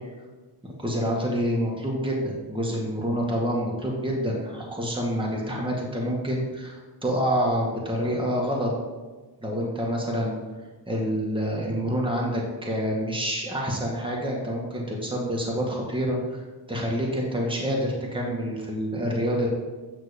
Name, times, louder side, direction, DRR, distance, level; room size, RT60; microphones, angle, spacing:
voice 1, 0.6-8.7 9.4-10.4 10.9-16.4 16.7-19.5, equal, 10° right, -2 dB, 2.0 m, -27 dB
9.3 x 6.3 x 5.2 m, 1.3 s
wide cardioid pair, 95°, 42 cm